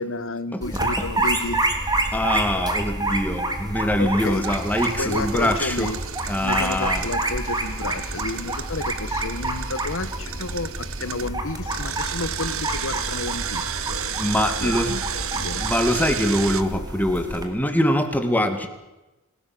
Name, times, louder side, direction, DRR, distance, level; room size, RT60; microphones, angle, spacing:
voice 1, 0.0-1.6 4.0-4.4 5.0-6.0 6.4-14.2 14.6-15.6, left 3 dB, 65° left, 13 dB, 1.6 m, -31 dB
sound 1, 0.6-17.4, right 2 dB, 20° right, 3.2 m, -28 dB
voice 2, 2.1-5.9 6.3-7.0 14.2-15.0 15.6-18.7, left 1 dB, 10° left, 6 dB, 2.4 m, -23 dB
Engine, 4.4-11.3 11.7-16.6, right 9 dB, 65° right, 1.4 m, -33 dB
27.5 x 17.5 x 7.9 m, 1.0 s
head